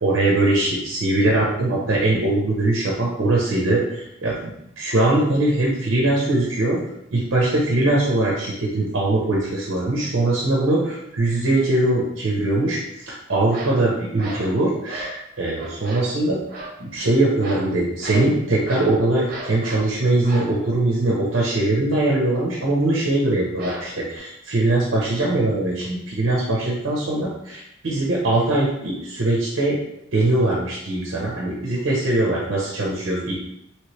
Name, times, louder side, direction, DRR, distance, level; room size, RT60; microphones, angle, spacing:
voice 1, 0.0-6.8 7.1-16.4 16.8-29.8 30.1-33.3, right 2 dB, 75° right, -4 dB, 0.7 m, -21 dB
sound 1, 13.5-13.8 14.2-14.5 14.9-15.2 15.5-16.1 16.5-16.8 17.4-17.7 18.0-18.3 18.7-19.0 19.3-19.9 20.2-20.5 23.6-24.2, right 1 dB, 50° right, 0.9 m, -34 dB
3.1 x 3.0 x 3.0 m, 0.80 s
head